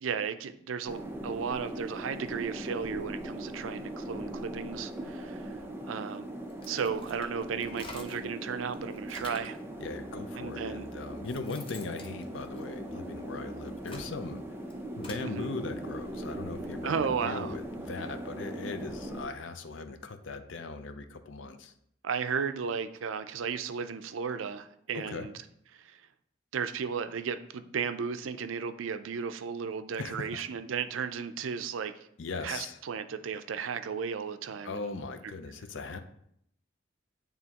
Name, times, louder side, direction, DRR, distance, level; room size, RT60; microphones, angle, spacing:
voice 1, 0.0-6.3 6.7-9.6 10.4-10.9 15.2-15.5 16.8-17.6 22.0-25.3 25.7-26.0 26.5-32.1 32.4-35.0, right 6 dB, 85° right, 10 dB, 0.4 m, -34 dB
sound 1, 0.9-19.3, right 1 dB, 10° right, 0.5 m, -40 dB
sound 2, 6.5-8.3 8.7-9.6 10.4-10.5 11.0-13.1 13.6-15.3, left 3 dB, 25° left, 0.7 m, -48 dB
voice 2, 9.8-14.4 15.0-21.7 24.9-25.3 30.0-30.5 32.2-32.8 34.6-36.0, left 4 dB, 75° left, 8 dB, 0.6 m, -39 dB
9.0 x 3.5 x 2.9 m, 0.73 s
head